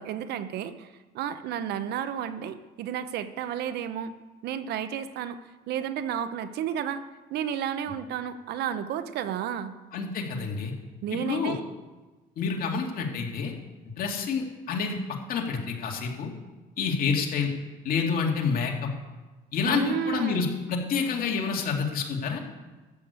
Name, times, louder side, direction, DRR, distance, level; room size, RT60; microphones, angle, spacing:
voice 1, 0.0-4.1 4.4-5.4 5.7-7.0 7.3-9.8 11.0-11.6 19.6-20.5, right 9 dB, 75° right, 12 dB, 0.9 m, -32 dB
voice 2, 9.9-10.7 11.1-11.6 12.4-13.5 14.0-15.0 15.3-16.3 16.8-17.5 17.8-18.9 19.5-22.4, left 5 dB, 60° left, 1 dB, 2.4 m, -28 dB
13.5 x 6.7 x 8.2 m, 1.2 s
cardioid pair, 110°, 17 cm